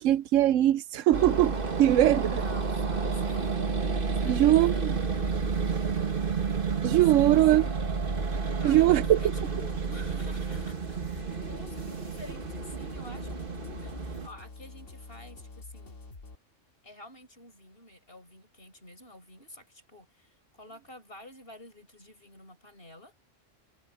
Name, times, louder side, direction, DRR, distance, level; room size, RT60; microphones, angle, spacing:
voice 1, 0.0-2.4 4.2-4.7 6.8-7.7 8.6-9.3, right 13 dB, 80° right, 0.9 m, -22 dB
sound 1, 1.1-14.3, right 5 dB, 45° right, 1.8 m, -30 dB
voice 2, 2.3-3.8 4.2-5.6 7.1-7.8 8.6-16.0 16.8-23.1, left 1 dB, 45° left, 7.4 m, -50 dB
sound 2, 9.0-16.4, left 3 dB, 75° left, 2.4 m, -47 dB
omnidirectional pair, 1.3 m